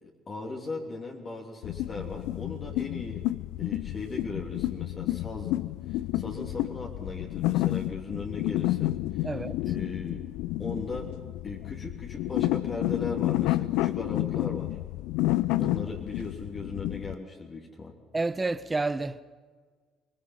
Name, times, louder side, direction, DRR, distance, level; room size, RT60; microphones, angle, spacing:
voice 1, 0.0-3.2 3.6-5.6 5.9-9.3 9.6-10.2 10.6-11.1 11.4-14.8 15.6-17.9, left 3 dB, 40° left, 3.2 m, -38 dB
sound 1, 1.6-17.1, left 16 dB, 75° left, 0.5 m, -30 dB
voice 2, 9.2-9.6 18.1-19.2, right 3 dB, 20° right, 1.0 m, -29 dB
25.0 x 20.0 x 5.7 m
hypercardioid pair, 65°, 0 cm